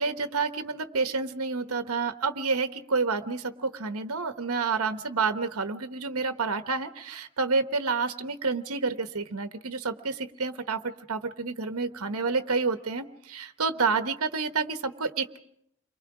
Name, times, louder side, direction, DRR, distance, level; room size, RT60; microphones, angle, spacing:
voice 1, 0.0-15.4, right 4 dB, 85° right, 9 dB, 1.1 m, -29 dB
30.0 x 23.5 x 4.8 m, 0.75 s
head